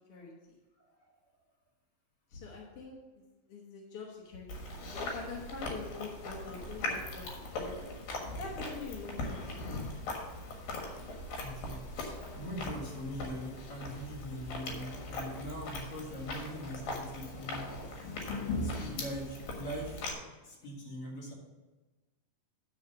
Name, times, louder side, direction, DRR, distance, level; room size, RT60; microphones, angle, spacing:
voice 1, 0.1-0.6 2.3-3.0 3.5-8.0 8.4-9.4, left 4 dB, 60° left, -2 dB, 1.6 m, -44 dB
Chewing mastication, 4.5-20.1, left 2 dB, 80° left, 3.3 m, -40 dB
voice 2, 11.3-17.6 18.6-20.1 20.4-21.3, equal, 45° left, -4 dB, 3.0 m, -42 dB
10.5 x 4.1 x 7.0 m, 1.2 s
omnidirectional pair, 4.1 m